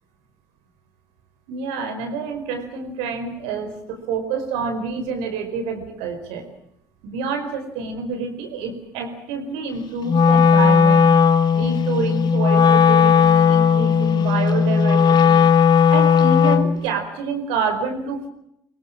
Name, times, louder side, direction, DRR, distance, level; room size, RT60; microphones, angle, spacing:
voice 1, 1.5-6.5 7.0-11.1 11.5-15.5 15.9-18.3, right 5 dB, 65° right, 6 dB, 4.8 m, -27 dB
Wind instrument woodwind instrument, 10.1-16.8, left 6 dB, 45° left, 1.8 m, -15 dB
24.5 x 24.0 x 7.4 m, 0.76 s
figure-of-eight pair, 60°, 10 cm